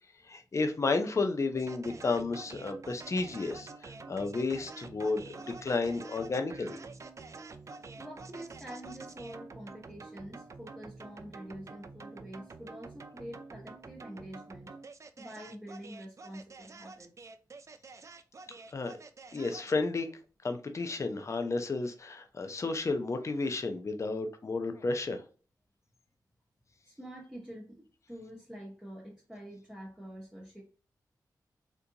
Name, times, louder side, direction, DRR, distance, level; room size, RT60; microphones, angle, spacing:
voice 1, 0.2-6.8 18.7-18.9 19.3-20.1 20.4-25.2, left 3 dB, 40° left, 0.6 m, -32 dB
sound 1, 1.5-19.9, right 4 dB, 45° right, 0.4 m, -48 dB
voice 2, 8.0-14.7 15.2-17.1 26.8-30.6, equal, 10° right, 1.1 m, -46 dB
3.7 x 2.5 x 2.8 m
cardioid pair, 75°, 7 cm